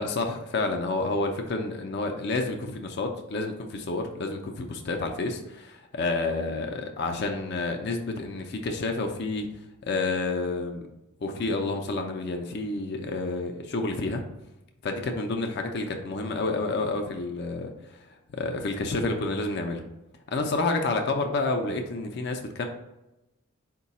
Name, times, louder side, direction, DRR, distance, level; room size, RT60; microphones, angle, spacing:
voice 1, 0.0-9.5 9.9-10.8 11.2-14.2 14.8-18.1 18.4-19.8 20.3-22.6, left 3 dB, 50° left, 4 dB, 0.4 m, -29 dB
4.7 x 2.2 x 4.0 m, 0.94 s
head